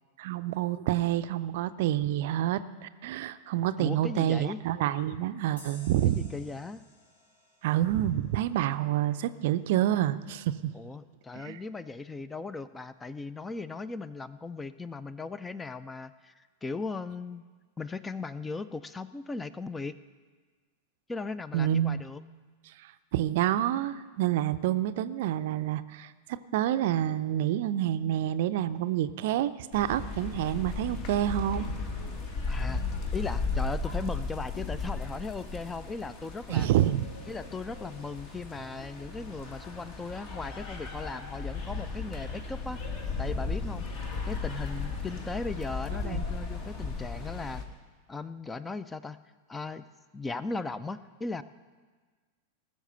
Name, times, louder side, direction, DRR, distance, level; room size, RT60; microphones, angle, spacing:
voice 1, 0.2-6.3 7.6-10.7 11.3-11.6 21.5-22.0 22.8-31.7 36.5-37.1 46.0-46.2, right 12 dB, 50° right, 13 dB, 0.5 m, -28 dB
voice 2, 3.8-4.6 6.0-6.8 10.7-17.4 17.8-20.0 21.1-22.2 32.5-32.8 33.1-36.7 37.3-42.8 43.2-43.9 44.2-47.6 48.1-49.2 49.5-49.8 50.1-51.4, left 3 dB, 10° left, 15 dB, 0.4 m, -37 dB
sound 1, 5.6-8.9, left 1 dB, 70° left, 2.8 m, -55 dB
sound 2, 29.7-47.6, left 4 dB, 40° left, 1.7 m, -35 dB
19.5 x 6.5 x 6.7 m, 1.4 s
figure-of-eight pair, 90°, 0 cm